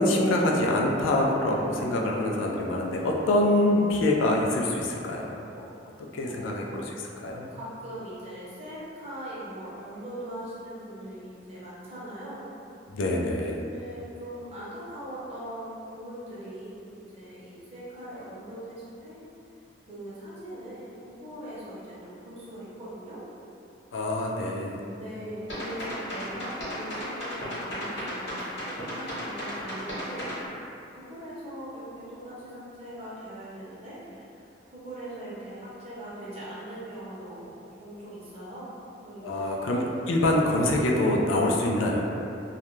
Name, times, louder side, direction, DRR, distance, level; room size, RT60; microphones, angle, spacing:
voice 1, 0.0-5.7 6.1-6.9 7.2-7.5 12.9-13.6 23.9-24.8 39.2-42.1, left 1 dB, 85° left, -1 dB, 0.3 m, -25 dB
voice 2, 6.2-6.9 7.5-12.5 13.6-19.2 19.9-23.2 24.8-30.4 30.9-34.4 34.7-37.5 37.8-38.7 39.0-39.6, right 1 dB, 35° right, -10 dB, 0.7 m, -41 dB
sound 1, 25.5-30.4, equal, 60° left, 1.0 m, -34 dB
2.3 x 2.1 x 3.0 m, 2.7 s
head